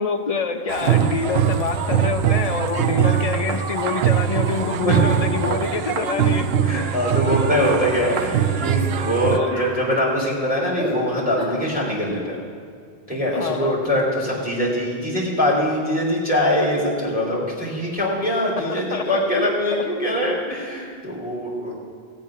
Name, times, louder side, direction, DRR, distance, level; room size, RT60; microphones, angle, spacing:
voice 1, 0.0-6.5 9.3-9.6 13.3-13.8 18.6-20.0, left 5 dB, 40° left, 6 dB, 0.8 m, -26 dB
sound 1, 0.7-9.4, right 9 dB, 75° right, 0.8 m, -22 dB
voice 2, 4.5-5.0 6.6-12.4 13.1-21.8, equal, 10° right, -6 dB, 3.3 m, -23 dB
sound 2, 7.3-7.5 7.9-8.1 8.9-9.1 9.5-9.8 10.8-11.0 11.4-11.6 13.3-13.5, equal, 45° right, 3.3 m, -34 dB
17.5 x 7.7 x 5.9 m, 2.3 s
omnidirectional pair, 1.0 m